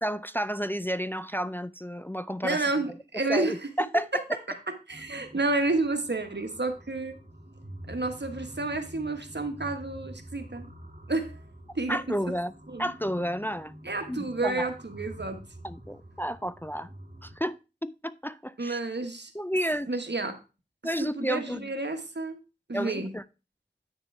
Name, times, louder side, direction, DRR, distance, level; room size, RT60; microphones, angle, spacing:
voice 1, 0.0-2.7 3.3-4.2 11.9-12.5 12.8-13.7 14.1-14.7 15.6-16.9 17.2-18.8 19.3-19.9 20.8-21.7 22.7-23.2, equal, 10° left, 0.3 m, -31 dB
voice 2, 2.4-3.5 4.1-4.2 4.9-7.2 7.9-10.7 11.1-11.4 11.7-12.0 12.7-12.8 13.8-15.4 18.6-19.3 19.9-20.4 21.2-22.4 22.7-23.1, right 2 dB, 75° right, 1.3 m, -30 dB
sound 1, 4.9-17.4, right 1 dB, 50° right, 1.7 m, -47 dB
9.0 x 6.8 x 3.3 m
wide cardioid pair, 40°, 18 cm